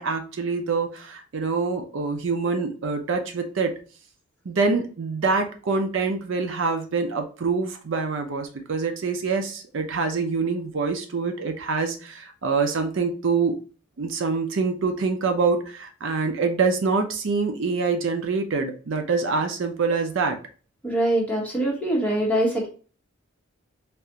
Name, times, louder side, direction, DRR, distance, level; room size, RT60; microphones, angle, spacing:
voice 1, 0.0-3.7 4.5-13.6 14.0-20.4, right 4 dB, 60° right, 5 dB, 0.5 m, -25 dB
voice 2, 20.8-22.7, right 1 dB, 5° left, -3 dB, 0.9 m, -23 dB
3.3 x 2.5 x 2.8 m, 0.38 s
head